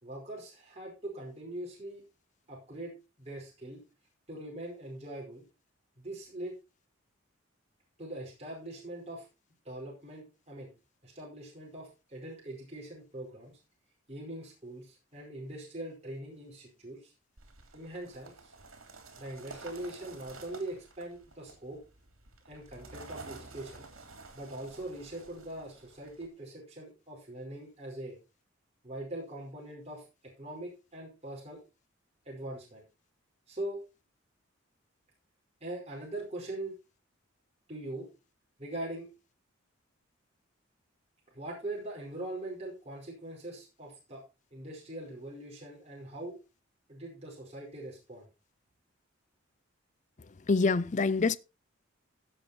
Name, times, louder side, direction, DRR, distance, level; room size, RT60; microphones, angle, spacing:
voice 1, 0.0-2.0 2.5-3.8 4.3-5.4 6.0-6.6 8.0-9.3 9.6-10.7 11.0-13.6 14.1-17.1 17.7-18.5 19.2-21.8 22.5-23.9 24.3-28.2 28.8-30.0 30.4-31.6 32.2-32.8 33.5-33.8 35.6-36.7 37.7-38.1 38.6-39.1 41.3-44.2 44.5-46.4 46.9-48.3, right 1 dB, 30° right, 5.0 m, -42 dB
sound 1, 17.4-26.3, right 3 dB, 80° right, 3.1 m, -50 dB
voice 2, 50.5-51.4, left 4 dB, 35° left, 0.5 m, -25 dB
16.0 x 6.0 x 4.3 m
head